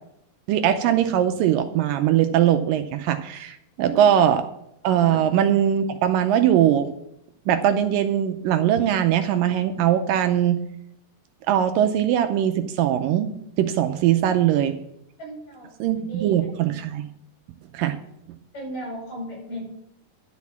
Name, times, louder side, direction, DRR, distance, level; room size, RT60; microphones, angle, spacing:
voice 1, 0.5-4.4 4.8-6.9 7.5-10.6 11.5-13.3 13.6-14.7 15.8-17.1 17.7-18.0, right 10 dB, 80° right, 9 dB, 2.2 m, -21 dB
voice 2, 15.2-16.4 18.5-19.6, right 1 dB, 50° left, -1 dB, 6.6 m, -36 dB
11.5 x 6.4 x 7.1 m, 0.78 s
omnidirectional pair, 4.1 m